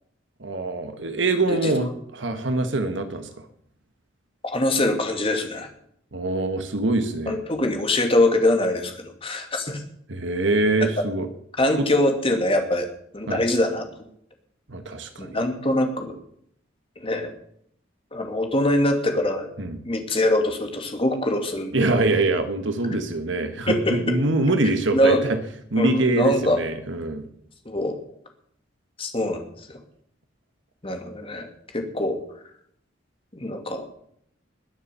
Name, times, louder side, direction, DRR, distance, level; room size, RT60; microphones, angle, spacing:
voice 1, 0.4-3.4 6.1-7.4 10.1-11.3 11.8-11.9 13.3-13.4 14.7-15.4 19.6-19.8 21.7-25.4 25.7-27.2, right 2 dB, 70° right, 8 dB, 1.5 m, -24 dB
voice 2, 4.5-5.7 7.3-8.9 9.2-9.8 11.6-12.9 13.1-13.8 15.2-16.2 17.0-17.3 18.1-19.5 19.9-21.8 23.7-24.2 24.9-25.3 25.8-26.6 27.7-27.9 29.0-29.4 30.8-31.5 31.7-32.2 33.3-33.8, left 1 dB, 30° left, 5 dB, 2.4 m, -23 dB
20.5 x 7.2 x 6.9 m, 0.68 s
head